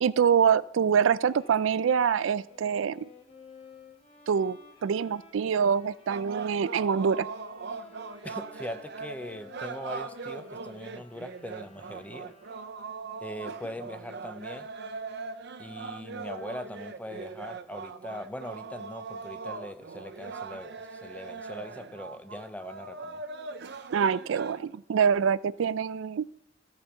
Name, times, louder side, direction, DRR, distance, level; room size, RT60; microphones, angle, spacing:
voice 1, 0.0-3.0 4.3-7.3 23.9-26.3, right 7 dB, 85° right, 19 dB, 0.4 m, -25 dB
Bowed string instrument, 1.1-12.9, left 5 dB, 30° left, 1.6 m, -55 dB
sound 1, 6.1-24.6, right 4 dB, 60° right, 0.7 m, -40 dB
voice 2, 8.2-12.3 13.2-14.7 15.6-23.2, left 1 dB, 10° left, 10 dB, 0.6 m, -41 dB
14.5 x 5.1 x 6.9 m, 0.80 s
head